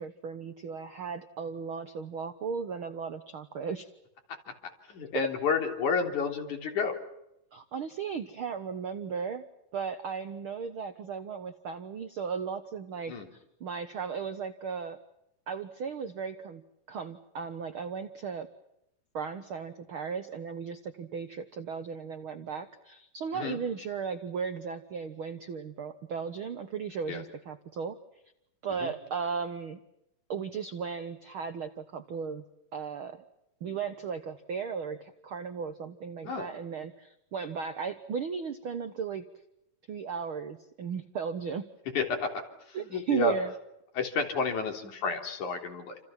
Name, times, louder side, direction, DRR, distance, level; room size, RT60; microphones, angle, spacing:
voice 1, 0.0-3.9 7.5-9.4 9.7-15.0 15.5-16.6 16.9-18.5 19.1-28.0 28.6-29.8 30.3-32.4 32.7-33.2 33.6-39.2 39.9-41.7 42.7-43.5, right 6 dB, 60° right, 10 dB, 1.4 m, -36 dB
voice 2, 4.9-7.0 13.1-13.3 23.3-23.6 27.1-27.2 28.7-28.9 36.2-36.5 41.9-42.3 42.7-43.3 43.9-46.0, left 4 dB, 60° left, 4 dB, 4.9 m, -30 dB
29.0 x 27.5 x 5.9 m, 0.84 s
omnidirectional pair, 3.9 m